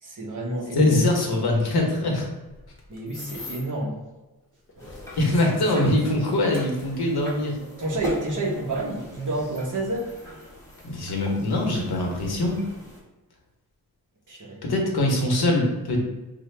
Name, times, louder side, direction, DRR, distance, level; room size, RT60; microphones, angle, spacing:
voice 1, 0.0-1.1 2.9-4.0 4.8-4.9 5.7-5.9 7.8-10.1 14.3-14.6, right 2 dB, 55° right, -2 dB, 1.0 m, -29 dB
voice 2, 0.7-2.3 5.2-7.6 10.8-12.6 14.6-16.0, left 1 dB, 85° left, 0 dB, 1.0 m, -23 dB
sound 1, 2.5-3.8 4.6-7.9 8.7-8.8 9.4-10.9 11.7-11.8 12.2-12.5, left 3 dB, 35° left, 0.8 m, -45 dB
sound 2, 4.8-13.0, equal, 10° left, 0.8 m, -41 dB
5.5 x 2.2 x 3.2 m, 1.1 s
wide cardioid pair, 180°, 38 cm